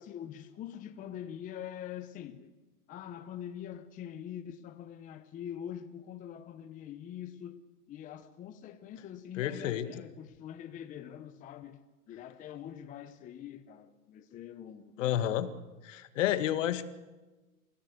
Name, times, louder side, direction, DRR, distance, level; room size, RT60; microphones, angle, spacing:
voice 1, 0.0-2.5 2.9-11.8 12.1-15.1, left 10 dB, 20° left, 1.0 m, -44 dB
voice 2, 9.4-9.9 15.0-15.5 15.8-16.9, left 11 dB, 55° left, 1.9 m, -30 dB
28.5 x 16.5 x 8.3 m
hypercardioid pair, 145°, 43 cm